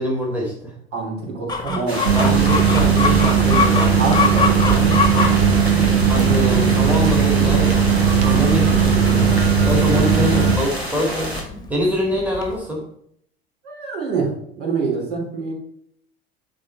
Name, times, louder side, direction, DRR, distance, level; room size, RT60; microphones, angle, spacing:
voice 1, 0.0-0.7 2.1-4.0 6.0-12.8, equal, 5° right, -2 dB, 2.1 m, -25 dB
voice 2, 0.9-2.0 2.3-2.4 4.0-6.3 9.7-10.1 13.6-15.5, right 4 dB, 50° right, -2 dB, 3.4 m, -27 dB
Chicken rooster, 1.5-12.6, left 4 dB, 15° left, 1.6 m, -26 dB
sound 1, 1.9-11.4, right 1 dB, 85° right, 1.5 m, -29 dB
sound 2, 2.0-10.6, right 6 dB, 65° right, 1.1 m, -17 dB
9.9 x 4.1 x 4.4 m, 0.67 s
figure-of-eight pair, 75°, 31 cm